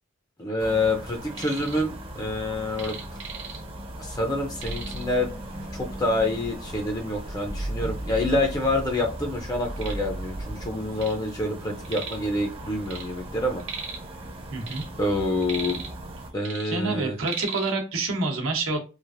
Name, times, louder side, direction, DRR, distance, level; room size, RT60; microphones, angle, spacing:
voice 1, 0.4-3.0 4.0-5.4 5.7-13.6 15.0-15.8 16.3-17.1, left 2 dB, 20° left, 2 dB, 0.5 m, -27 dB
sound 1, 0.6-16.3, right 1 dB, 25° right, 0.6 m, -39 dB
sound 2, 1.2-1.8 2.1-3.9 4.2-4.3 4.6-5.2 6.0-6.1 6.6-6.7 7.5-7.6 7.8-8.7 9.2-11.2 11.5-12.3 12.6-14.1 14.5-16.1 16.4-17.7, right 6 dB, 65° right, 1.0 m, -38 dB
sound 3, 4.6-10.7, right 1 dB, 90° left, 1.0 m, -37 dB
voice 2, 14.5-14.8 16.7-18.8, right 3 dB, 90° right, 2 dB, 0.9 m, -27 dB
3.2 x 2.5 x 2.5 m, 0.31 s
head